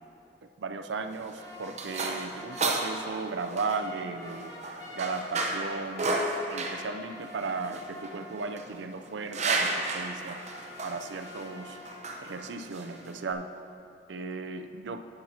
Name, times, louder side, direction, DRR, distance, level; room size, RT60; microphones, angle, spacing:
voice 1, 0.6-4.5 4.9-6.2 6.5-10.4 10.8-11.8 12.2-13.5 14.1-15.0, right 4 dB, 80° right, 7 dB, 0.5 m, -36 dB
sound 1, 1.0-13.3, right 2 dB, 40° right, 0.8 m, -34 dB
sound 2, 1.4-8.9 9.3-13.4, left 2 dB, 20° left, 0.9 m, -47 dB
11.5 x 8.9 x 2.8 m, 2.6 s
head